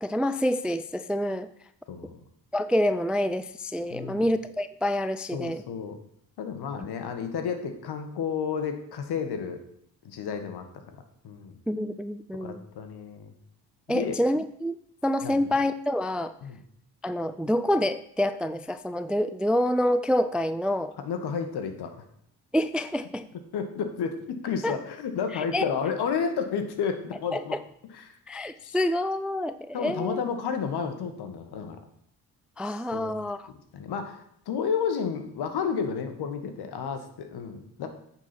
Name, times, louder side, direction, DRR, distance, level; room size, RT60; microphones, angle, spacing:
voice 1, 0.0-1.5 2.5-5.6 11.7-12.6 13.9-14.8 15.0-16.3 17.0-20.9 22.5-23.3 24.6-24.8 25.3-25.6 27.3-27.6 28.3-30.2 32.6-33.5, left 1 dB, 5° right, 13 dB, 0.3 m, -27 dB
voice 2, 1.9-2.2 3.9-4.2 5.3-6.0 6.4-9.6 10.0-10.6 10.9-11.6 12.3-13.3 13.9-14.2 15.2-15.5 16.4-16.6 21.0-21.9 23.5-27.6 27.9-28.1 28.6-28.8 29.7-31.8 32.6-33.1 33.7-37.9, left 6 dB, 65° left, 6 dB, 1.5 m, -31 dB
8.9 x 4.3 x 5.9 m, 0.70 s
supercardioid pair, 55°, 42 cm